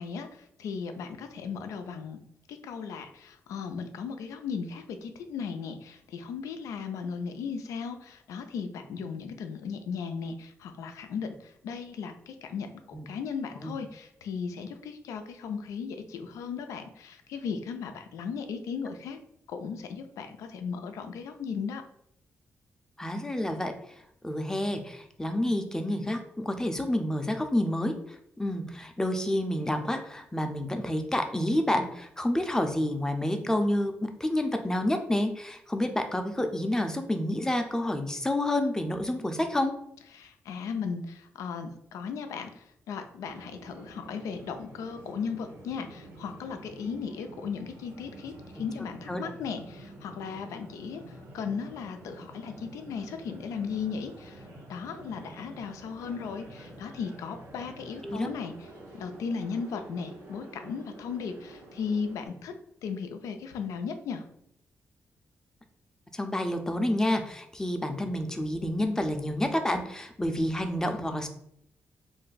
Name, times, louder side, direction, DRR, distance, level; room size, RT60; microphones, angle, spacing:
voice 1, 0.0-2.2 2.5-12.7 13.1-19.2 19.5-21.8 40.1-54.4 54.7-58.5 58.9-62.5 62.8-64.2, left 6 dB, 85° left, 7 dB, 0.4 m, -36 dB
voice 2, 23.0-23.7 24.2-27.9 28.4-39.7 49.1-49.2 58.0-58.3 66.1-71.3, left 1 dB, 10° left, 5 dB, 0.5 m, -29 dB
sound 1, 43.2-62.3, right 1 dB, 80° right, 1.0 m, -48 dB
2.5 x 2.1 x 3.9 m, 0.74 s
supercardioid pair, 55°, 5 cm